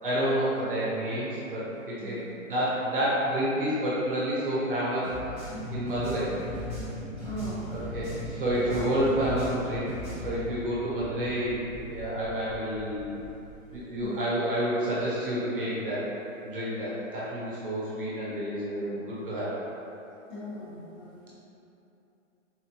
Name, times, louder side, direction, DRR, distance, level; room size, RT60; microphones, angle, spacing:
voice 1, 0.0-5.1 5.7-6.3 7.7-9.9 10.2-11.6 11.9-13.2 13.7-16.0 16.4-19.5, equal, 40° right, -8 dB, 0.9 m, -29 dB
voice 2, 2.0-2.3 7.2-8.0 14.0-14.1 20.3-21.3, right 1 dB, 35° left, -12 dB, 1.1 m, -39 dB
sound 1, 5.0-8.3 8.5-10.4, left 1 dB, 10° right, 0.6 m, -41 dB
sound 2, 5.5-14.1, left 1 dB, 55° left, 1.4 m, -40 dB
4.0 x 3.0 x 2.8 m, 2.9 s
hypercardioid pair, 180°, 40 cm